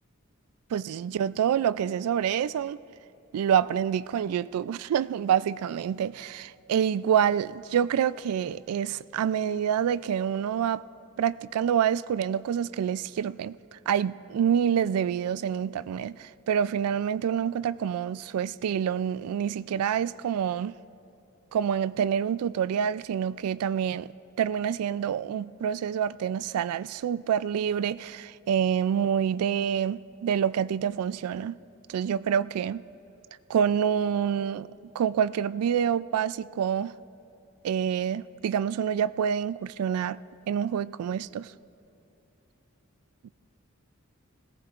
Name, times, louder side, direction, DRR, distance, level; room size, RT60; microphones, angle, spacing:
voice 1, 0.7-2.8 3.3-10.8 11.2-20.8 21.5-24.1 24.4-31.6 31.9-32.8 33.5-34.7 34.9-36.9 37.6-40.2 40.5-41.5, right 8 dB, 90° right, 0.3 m, -27 dB
20.5 x 17.5 x 2.5 m
head